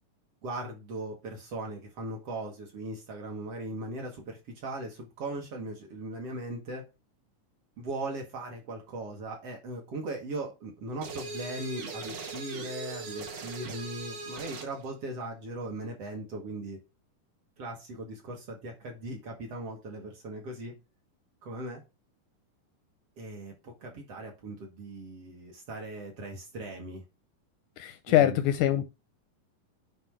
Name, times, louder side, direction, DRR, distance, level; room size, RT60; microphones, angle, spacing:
voice 1, 0.4-6.8 7.8-16.8 17.6-20.8 21.4-21.8 23.2-27.0 28.1-28.4, right 2 dB, 50° right, 2.2 m, -39 dB
sound 1, 11.0-14.8, right 3 dB, 70° right, 2.8 m, -39 dB
voice 2, 27.8-28.9, left 12 dB, 80° left, 1.9 m, -24 dB
9.3 x 3.1 x 4.7 m
omnidirectional pair, 3.9 m